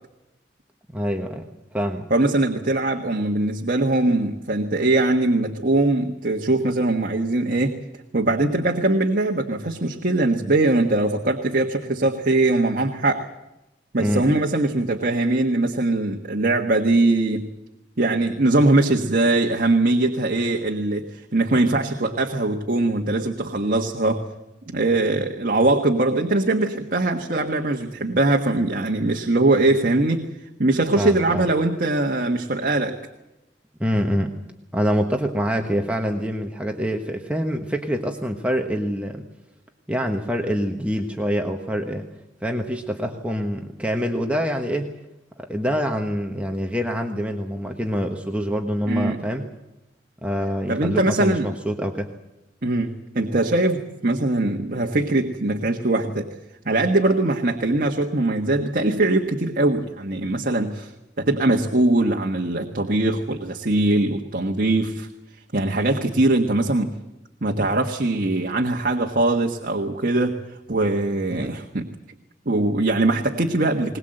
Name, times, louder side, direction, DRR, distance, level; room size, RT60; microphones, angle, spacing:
voice 1, 0.9-2.1 14.0-14.3 31.0-31.5 33.8-34.3 34.7-39.2 39.9-42.1 42.4-44.9 45.4-49.5 50.2-52.1 71.4-71.5, equal, 5° right, 2 dB, 1.3 m, -25 dB
voice 2, 2.1-7.7 8.1-13.2 13.9-17.5 18.0-24.3 24.7-30.3 30.6-33.0 48.9-49.2 50.7-51.5 52.6-56.3 56.6-60.9 61.2-65.1 65.5-66.9 67.4-70.4 70.7-71.9 72.4-74.0, right 2 dB, 50° right, 2 dB, 1.5 m, -21 dB
21.5 x 20.0 x 7.9 m, 0.96 s
head